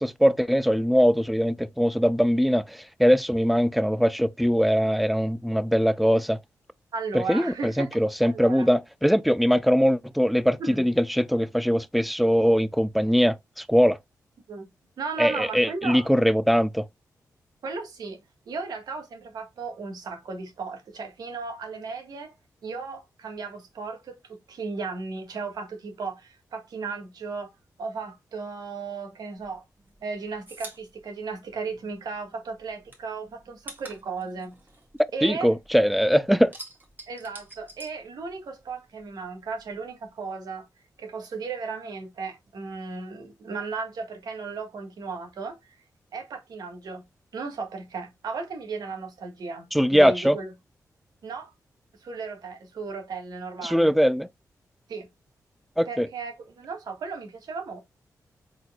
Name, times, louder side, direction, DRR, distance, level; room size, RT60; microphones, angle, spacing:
voice 1, 0.0-6.4 7.1-14.0 15.2-16.8 35.2-36.5 49.7-50.4 53.6-54.3 55.8-56.1, equal, ahead, 0.4 m, -21 dB
voice 2, 6.9-7.9 8.2-8.7 10.6-10.8 14.5-14.7 15.0-16.1 17.6-18.2 18.5-22.3 22.6-27.5 27.8-29.6 30.0-34.5 35.1-35.5 37.1-40.7 41.0-45.6 46.1-47.0 47.3-50.5 51.2-51.5 52.0-53.9 54.9-55.1 55.8-57.8, right 4 dB, 80° right, 1.5 m, -35 dB
sound 1, 29.4-32.2 32.5-35.8 36.1-38.7 39.0-40.1, right 2 dB, 30° right, 1.9 m, -46 dB
4.1 x 4.0 x 2.4 m
cardioid pair, 50°, 7 cm